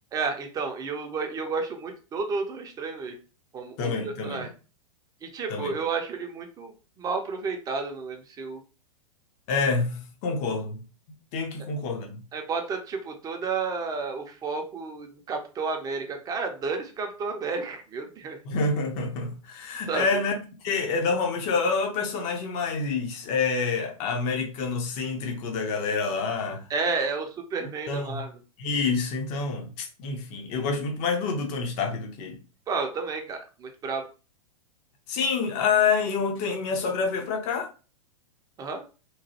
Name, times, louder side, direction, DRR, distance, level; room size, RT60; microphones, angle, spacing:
voice 1, 0.1-3.2 3.5-4.5 5.2-6.7 7.0-8.6 12.3-18.4 19.9-20.2 26.7-28.3 32.7-34.0 38.6-38.8, right 4 dB, 20° right, 0.6 m, -31 dB
voice 2, 3.8-4.5 5.5-5.7 9.5-10.8 11.3-12.2 18.4-26.7 27.9-28.2 28.6-32.4 35.1-37.7, left 4 dB, 35° left, 0.7 m, -27 dB
3.0 x 2.2 x 2.8 m
figure-of-eight pair, 105°, 19 cm